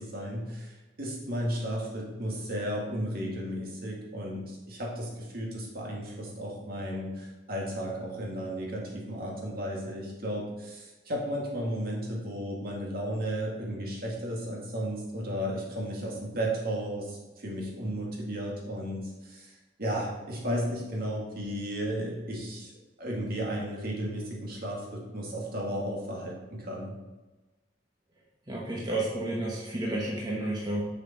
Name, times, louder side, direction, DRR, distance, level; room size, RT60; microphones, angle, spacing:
voice 1, 0.0-22.7 23.0-27.0, equal, 55° right, -2 dB, 2.1 m, -34 dB
voice 2, 28.5-30.8, right 1 dB, 25° right, -3 dB, 1.1 m, -31 dB
6.9 x 6.5 x 4.1 m, 1.2 s
head